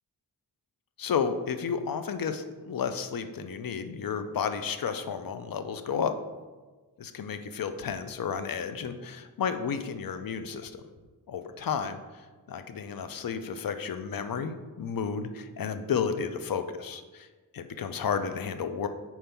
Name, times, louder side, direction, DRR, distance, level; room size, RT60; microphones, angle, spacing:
voice 1, 1.0-6.2 7.0-10.8 11.3-17.3 17.5-18.9, left 6 dB, 60° left, 9 dB, 0.6 m, -32 dB
4.5 x 4.4 x 5.3 m, 1.3 s
wide cardioid pair, 75°, 39 cm